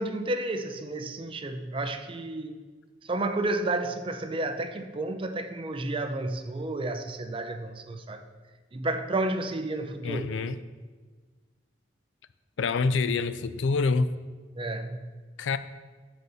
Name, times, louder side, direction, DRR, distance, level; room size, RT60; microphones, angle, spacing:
voice 1, 0.0-2.6 3.0-8.2 8.7-10.3 14.6-15.1, right 2 dB, 30° right, 0.5 m, -31 dB
voice 2, 10.0-10.6 12.6-14.2 15.4-15.6, left 4 dB, 85° left, 0.4 m, -26 dB
8.1 x 4.0 x 6.7 m
head